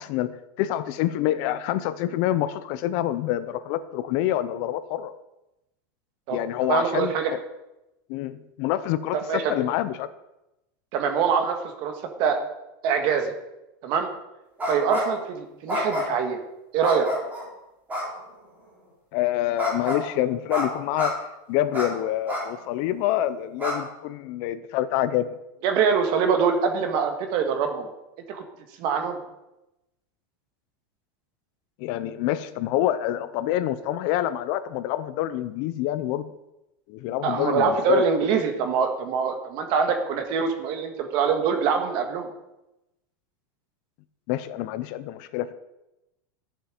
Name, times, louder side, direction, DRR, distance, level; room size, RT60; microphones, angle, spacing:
voice 1, 0.0-5.1 6.3-7.4 8.1-10.1 19.1-21.2 21.5-25.3 31.8-36.3 36.9-38.1 44.3-45.5, left 13 dB, 45° left, 13 dB, 0.6 m, -27 dB
voice 2, 6.7-7.3 9.1-9.6 10.9-11.9 12.2-12.4 12.8-13.3 13.8-14.1 14.7-16.4 16.7-17.1 25.6-27.9 28.3-28.4 28.8-29.2 37.2-42.3, right 6 dB, 40° right, 6 dB, 1.7 m, -24 dB
sound 1, 14.6-15.2 15.7-16.3 16.8-17.4 17.9-18.1 19.6-20.0 20.5-20.7 20.9-21.1 21.7-21.9 22.3-22.4 22.9-23.0 23.6-23.7, left 1 dB, 15° right, 3.5 m, -28 dB
13.0 x 7.3 x 5.1 m, 0.93 s
supercardioid pair, 165°, 11 cm